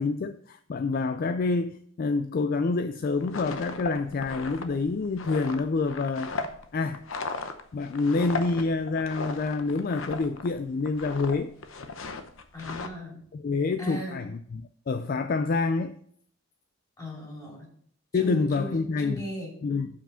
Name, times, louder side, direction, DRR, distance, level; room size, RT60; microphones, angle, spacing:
voice 1, 0.0-6.3 6.7-7.0 7.7-11.5 13.3-16.0 18.1-19.2 19.6-19.9, left 3 dB, 45° left, 0.3 m, -27 dB
sound 1, 3.1-10.5 10.8-11.3 11.6-12.9, left 3 dB, 70° left, 0.8 m, -36 dB
voice 2, 12.5-13.2 13.8-14.2 17.0-17.7 18.1-19.5, equal, 20° left, 3.0 m, -37 dB
7.3 x 5.7 x 5.6 m
head